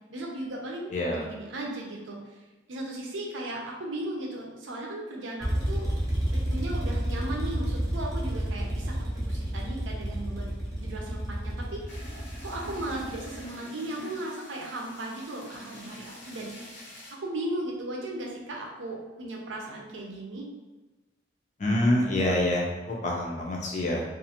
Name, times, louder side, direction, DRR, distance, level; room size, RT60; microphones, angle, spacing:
voice 1, 0.1-2.2 2.7-5.9 6.3-12.1 12.4-16.5 17.1-20.4, right 1 dB, 85° right, -1 dB, 0.6 m, -36 dB
voice 2, 0.9-1.3 21.6-24.0, left 1 dB, 40° left, -1 dB, 0.5 m, -26 dB
sound 1, 5.4-13.5, right 1 dB, 20° right, 0.6 m, -31 dB
sound 2, 11.9-17.1, left 1 dB, 65° left, 0.8 m, -45 dB
2.5 x 2.4 x 2.8 m, 1.2 s
head